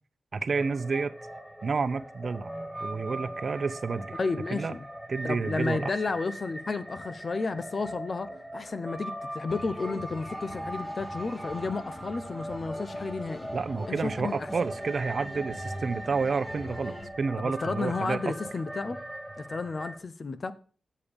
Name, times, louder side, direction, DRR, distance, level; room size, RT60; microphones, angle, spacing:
voice 1, 0.3-1.1 1.6-2.5 2.8-4.2 4.5-4.7 5.1-5.9 13.5-18.3, right 4 dB, 60° right, 0.7 m, -30 dB
sound 1, 0.5-20.0, right 1 dB, ahead, 1.9 m, -40 dB
voice 2, 4.2-4.8 5.2-13.5 13.9-14.5 17.4-19.0 19.4-20.5, left 4 dB, 50° left, 0.6 m, -32 dB
sound 2, 9.5-17.1, equal, 30° left, 1.7 m, -43 dB
8.4 x 7.0 x 5.3 m
cardioid pair, 65°, 0 cm